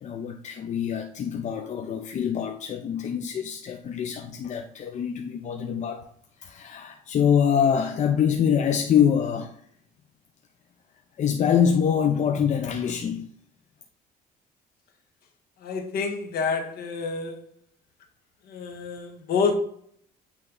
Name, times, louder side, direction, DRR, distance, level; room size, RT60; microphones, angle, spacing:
voice 1, 0.0-6.1 6.4-9.5 11.2-13.3, left 8 dB, 45° left, 0.6 m, -25 dB
voice 2, 15.6-17.4 18.5-19.5, left 5 dB, 65° left, 1.3 m, -28 dB
9.0 x 3.3 x 3.9 m
cardioid pair, 110°, 17 cm